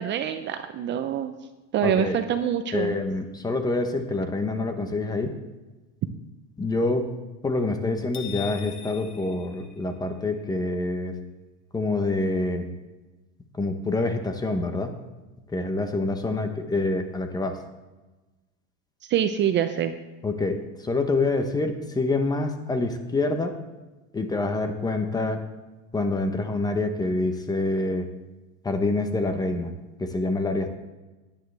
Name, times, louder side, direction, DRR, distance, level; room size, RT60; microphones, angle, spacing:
voice 1, 0.0-1.3 1.7-3.0 19.1-20.0, right 9 dB, 35° right, 9 dB, 0.6 m, -25 dB
voice 2, 1.8-2.2 2.7-5.3 6.6-7.1 7.4-11.2 11.7-12.7 13.5-14.9 15.5-17.6 20.2-23.6 24.1-25.4 25.9-28.1 28.6-29.7 30.0-30.7, left 2 dB, 10° left, 6 dB, 0.9 m, -26 dB
sound 1, 8.1-10.3, left 10 dB, 35° left, 1.4 m, -41 dB
16.0 x 10.5 x 3.4 m, 1.1 s
cardioid pair, 155°, 33 cm